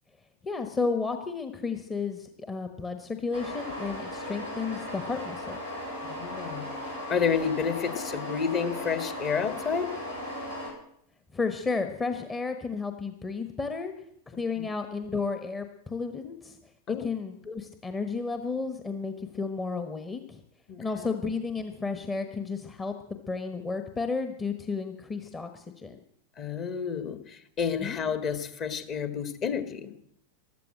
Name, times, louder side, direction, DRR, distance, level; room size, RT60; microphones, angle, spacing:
voice 1, 0.4-5.6 11.3-13.9 14.3-16.6 16.9-20.4 20.8-26.0 27.8-28.0, left 4 dB, 15° left, 7 dB, 1.2 m, -32 dB
sound 1, 3.3-10.7, left 1 dB, 90° left, 7.3 m, -37 dB
voice 2, 6.0-10.0 14.6-14.7 16.9-17.1 20.7-21.1 26.4-29.9, left 6 dB, 35° left, 10 dB, 1.7 m, -30 dB
15.0 x 12.5 x 7.6 m, 0.70 s
figure-of-eight pair, 90°, 0 cm